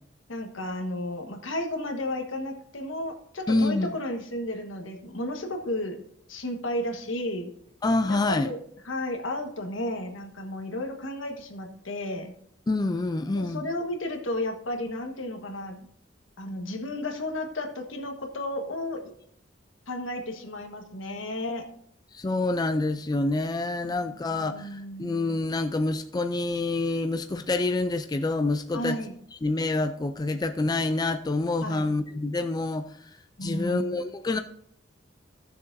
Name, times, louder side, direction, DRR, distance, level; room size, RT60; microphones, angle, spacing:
voice 1, 0.3-6.0 6.3-7.5 8.1-8.6 8.8-12.3 13.3-15.9 16.4-19.1 19.9-21.6 23.8-25.1 28.7-29.1 31.6-31.8 33.4-34.0, left 1 dB, 85° left, 4 dB, 1.4 m, -33 dB
voice 2, 3.5-3.9 7.8-8.5 12.7-13.6 22.1-29.0 29.4-33.1 33.4-34.4, left 2 dB, 20° left, 8 dB, 0.3 m, -27 dB
15.0 x 6.8 x 2.6 m, 0.67 s
head